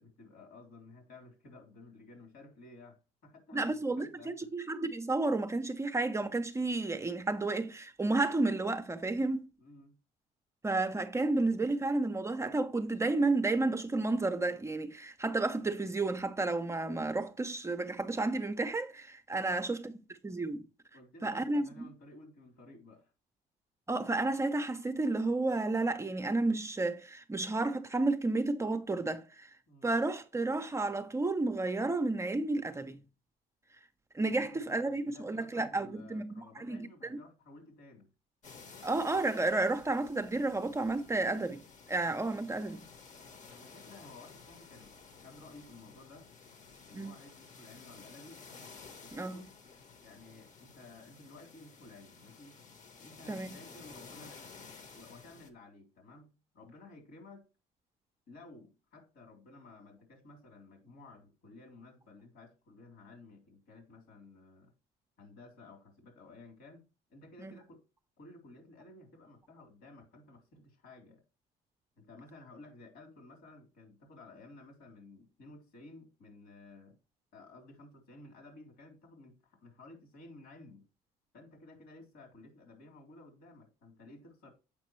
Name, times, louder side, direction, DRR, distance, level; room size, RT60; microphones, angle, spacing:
voice 1, 0.0-4.5 9.6-10.0 19.4-19.7 20.9-23.1 29.7-29.9 34.2-38.1 43.5-46.3 46.8-48.4 49.0-49.7 50.0-52.6 53.0-54.4 54.9-57.4 58.3-64.7 65.2-67.8 68.2-71.2 72.0-77.0 77.3-80.8 81.3-84.5, left 2 dB, 70° left, 3.3 m, -54 dB
voice 2, 3.5-9.5 10.6-19.9 20.2-20.6 21.2-21.9 23.9-29.5 29.8-33.0 34.1-37.2 38.8-41.6 41.9-42.8 46.9-47.1 49.1-49.4 53.3-53.5 67.4-67.5, right 2 dB, 15° right, 0.6 m, -32 dB
sound 1, 38.4-55.5, left 5 dB, 45° left, 1.2 m, -54 dB
7.3 x 5.1 x 3.1 m
cardioid pair, 110°, 17 cm